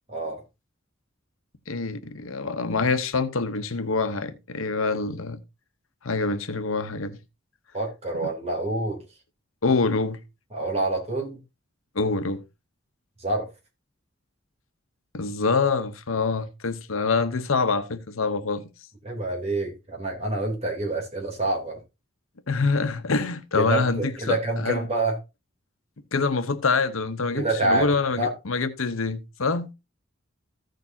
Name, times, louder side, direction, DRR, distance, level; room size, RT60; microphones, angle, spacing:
voice 1, 0.1-0.4 7.7-9.0 10.5-11.4 13.2-13.5 19.0-21.8 23.5-25.2 27.3-27.9 28.2-28.3, right 2 dB, 30° right, 3.2 m, -27 dB
voice 2, 1.7-5.4 6.0-7.2 8.1-8.3 9.6-10.2 11.9-12.4 15.1-18.7 22.5-24.9 26.1-29.7, left 4 dB, 80° left, 0.9 m, -25 dB
15.0 x 6.6 x 2.8 m
head